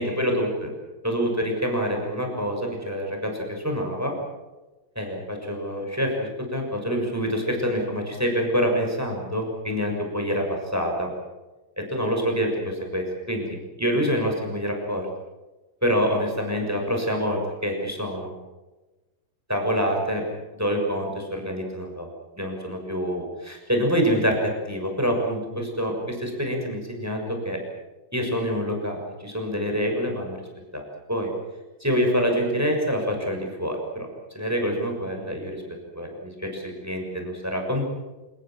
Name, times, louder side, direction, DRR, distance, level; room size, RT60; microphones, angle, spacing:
voice 1, 0.0-0.7 1.0-4.1 4.9-11.1 11.8-15.1 15.8-18.3 19.5-20.2 20.6-22.1 22.4-27.6 28.1-30.4 30.7-30.8 31.1-31.3 31.8-34.1 34.3-35.6 35.9-37.8, equal, 5° right, 2 dB, 6.1 m, -26 dB
28.5 x 19.5 x 7.6 m, 1.1 s
omnidirectional pair, 4.7 m